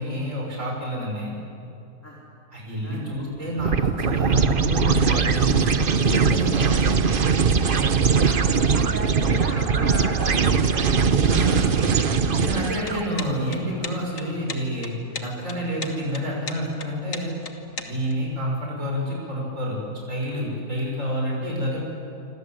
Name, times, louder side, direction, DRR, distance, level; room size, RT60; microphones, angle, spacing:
voice 1, 0.0-1.3 2.5-6.7 11.2-11.7 12.4-14.9 15.2-17.3 17.8-19.8 20.1-21.9, equal, 55° right, -2 dB, 6.6 m, -28 dB
sound 1, 3.6-13.1, right 5 dB, 40° right, 1.0 m, -21 dB
voice 2, 7.4-11.0 11.8-12.0 12.4-12.7, equal, 10° left, -3 dB, 3.3 m, -36 dB
sound 2, 12.8-18.1, left 4 dB, 60° left, 2.1 m, -36 dB
26.5 x 26.5 x 8.0 m, 2.7 s
omnidirectional pair, 1.6 m